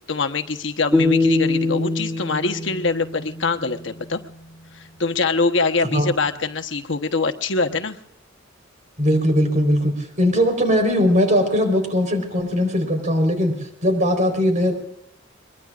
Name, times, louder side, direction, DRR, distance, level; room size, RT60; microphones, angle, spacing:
voice 1, 0.1-4.2 4.7-8.0, left 4 dB, 65° left, 6 dB, 1.1 m, -23 dB
sound 1, 0.9-4.1, left 2 dB, 10° right, 2.4 m, -23 dB
voice 2, 9.0-13.5 13.8-14.7, equal, 40° right, 5 dB, 4.2 m, -19 dB
22.5 x 22.5 x 2.5 m, 0.76 s
head